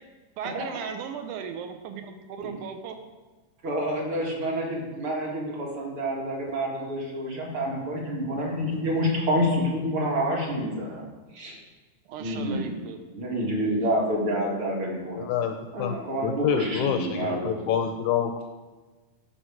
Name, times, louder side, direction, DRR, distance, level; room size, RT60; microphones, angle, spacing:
voice 1, 0.4-3.0 12.1-13.0, right 7 dB, 80° right, 6 dB, 2.1 m, -36 dB
voice 2, 3.6-11.0 11.3-11.6 12.2-12.7 13.1-15.3 15.7-17.6, equal, 45° right, -2 dB, 2.2 m, -28 dB
voice 3, 15.1-16.0 16.2-18.4, left 9 dB, 80° left, 6 dB, 1.7 m, -27 dB
11.5 x 5.3 x 4.9 m, 1.3 s
omnidirectional pair, 3.7 m